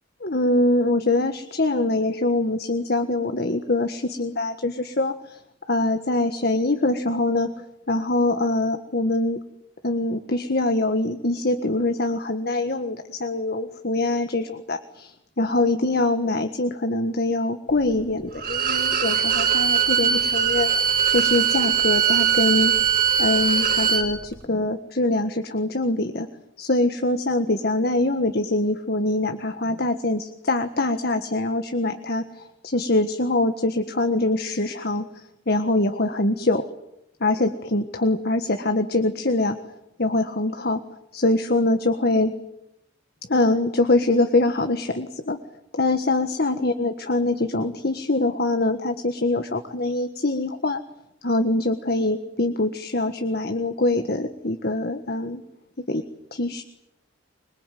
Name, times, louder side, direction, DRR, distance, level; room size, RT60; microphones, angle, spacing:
voice 1, 0.2-5.4 5.7-9.4 9.8-20.7 21.1-22.7 23.2-26.3 26.6-36.6 37.2-39.6 40.0-40.8 41.1-42.3 43.3-45.4 45.7-50.8 51.2-55.4 55.9-56.0 56.3-56.6, left 2 dB, 50° left, 8 dB, 1.5 m, -24 dB
Bowed string instrument, 18.4-24.1, right 8 dB, 45° right, 4.9 m, -21 dB
25.5 x 22.5 x 9.3 m, 0.84 s
head